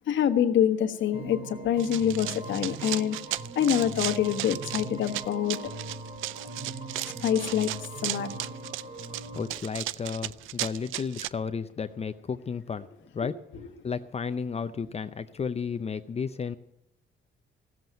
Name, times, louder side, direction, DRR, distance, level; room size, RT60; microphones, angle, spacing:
voice 1, 0.1-3.2 3.5-5.6 7.2-7.7 8.0-8.3, left 9 dB, 70° left, 8 dB, 1.3 m, -25 dB
sound 1, 1.1-9.5, right 3 dB, 30° right, 4.7 m, -40 dB
Run, 1.8-11.3, right 15 dB, 85° right, 0.4 m, -35 dB
voice 2, 9.4-12.9 13.1-13.4 13.8-16.6, left 6 dB, 30° left, 10 dB, 0.6 m, -33 dB
15.5 x 7.8 x 9.2 m, 0.81 s
cardioid pair, 90°, 20 cm